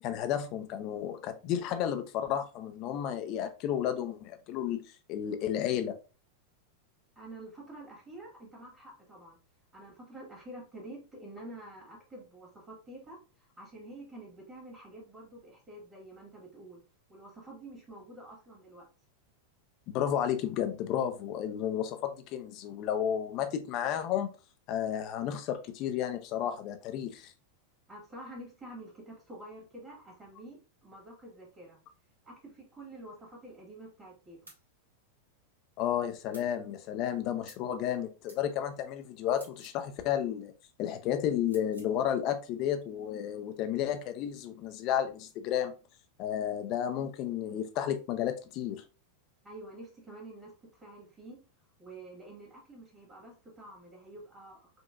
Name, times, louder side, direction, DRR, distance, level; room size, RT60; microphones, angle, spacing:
voice 1, 0.0-4.8 5.1-6.0 19.9-24.3 24.7-27.3 35.8-40.5 40.8-45.7 46.2-48.8, left 10 dB, 40° left, 0.6 m, -32 dB
voice 2, 7.1-9.4 9.7-16.8 17.1-18.9 27.9-31.8 32.2-34.4 49.4-51.4 51.8-54.7, right 1 dB, 20° right, 1.8 m, -48 dB
sound 1, 34.5-34.6 36.3-36.5 37.5-37.7 38.3-38.4 39.3-39.8 41.5-41.9, right 1 dB, 80° right, 1.4 m, -53 dB
5.2 x 2.8 x 2.4 m
figure-of-eight pair, 90°, 0 cm